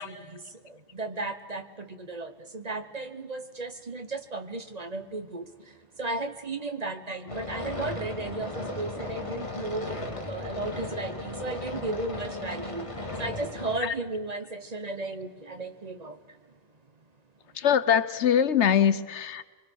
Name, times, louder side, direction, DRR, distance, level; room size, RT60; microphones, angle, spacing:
voice 1, 0.0-16.4, right 2 dB, 35° right, 1.2 m, -35 dB
sound 1, 7.3-13.8, left 2 dB, 30° left, 2.0 m, -36 dB
voice 2, 17.6-19.4, left 8 dB, 90° left, 1.2 m, -23 dB
24.5 x 23.5 x 6.4 m
omnidirectional pair, 1.1 m